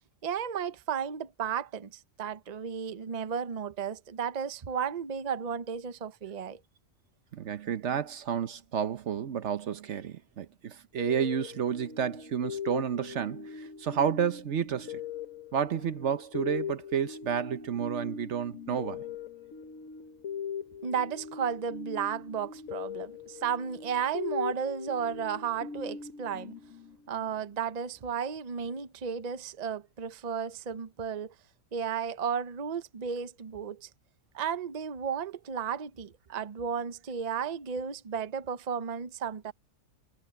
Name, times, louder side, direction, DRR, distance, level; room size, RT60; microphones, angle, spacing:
voice 1, 0.2-6.6 20.8-26.5 27.1-31.3 31.7-33.9 34.3-39.5, right 7 dB, 40° right, 0.8 m, -33 dB
voice 2, 7.3-15.0 15.5-19.0, right 8 dB, 65° right, 1.1 m, -31 dB
sound 1, 11.0-27.3, left 7 dB, 90° left, 1.5 m, -40 dB
omnidirectional pair, 1.3 m